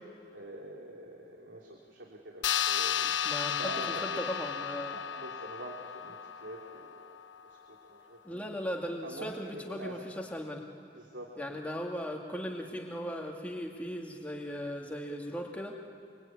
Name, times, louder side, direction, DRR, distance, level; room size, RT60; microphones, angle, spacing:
voice 1, 0.3-3.1 3.6-4.2 4.9-7.2 7.4-8.6 9.0-10.2 10.9-11.6, right 2 dB, 85° right, -1 dB, 3.2 m, -46 dB
sound 1, 2.4-7.3, left 9 dB, 80° left, 0.7 m, -33 dB
voice 2, 3.2-5.0 8.2-10.7 11.4-15.8, equal, 10° left, 0 dB, 2.3 m, -38 dB
25.0 x 24.0 x 9.6 m, 2.6 s
head